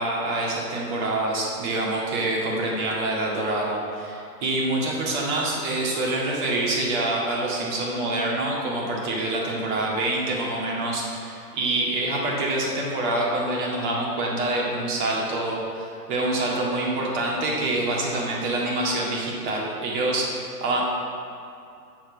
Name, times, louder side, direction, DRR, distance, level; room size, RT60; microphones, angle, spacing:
voice 1, 0.0-20.8, right 2 dB, 30° right, -3 dB, 1.9 m, -26 dB
7.6 x 6.1 x 7.4 m, 2.5 s
figure-of-eight pair, 125°, 49 cm